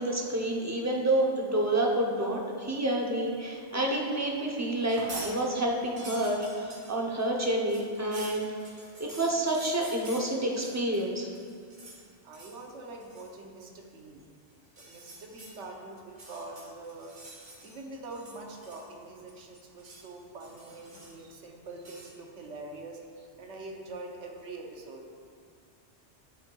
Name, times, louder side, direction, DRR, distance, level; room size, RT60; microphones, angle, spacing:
voice 1, 0.0-8.5 9.0-11.3, right 1 dB, 20° right, -1 dB, 0.5 m, -29 dB
sound 1, 4.8-5.3 5.7-11.1 11.3-12.0 12.3-12.6 13.0-13.3 14.6-15.5 16.1-17.8 18.1-19.0 19.3-20.1 20.4-21.3 21.8-22.1, right 2 dB, 50° right, 1.4 m, -47 dB
voice 2, 12.2-14.3 14.8-16.0 16.3-17.2 17.6-23.0 23.4-25.1, right 2 dB, 80° right, 1 dB, 1.2 m, -44 dB
10.5 x 5.3 x 2.3 m, 2.2 s
omnidirectional pair, 1.2 m